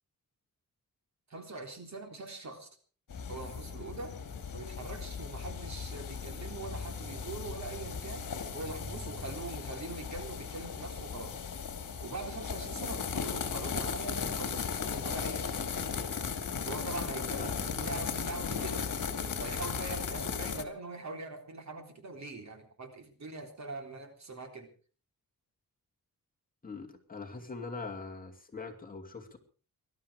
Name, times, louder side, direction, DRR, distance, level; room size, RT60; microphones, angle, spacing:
voice 1, 1.3-2.7 3.3-4.1 4.5-8.3 8.5-11.4 12.0-14.7 15.0-15.6 16.7-18.9 19.4-24.7, right 3 dB, 50° right, 5 dB, 3.8 m, -42 dB
sound 1, 3.1-20.6, left 6 dB, 60° left, 2.5 m, -37 dB
voice 2, 26.6-29.4, left 4 dB, 25° left, 3 dB, 2.7 m, -42 dB
21.0 x 12.5 x 4.9 m, 0.40 s
wide cardioid pair, 150°, 34 cm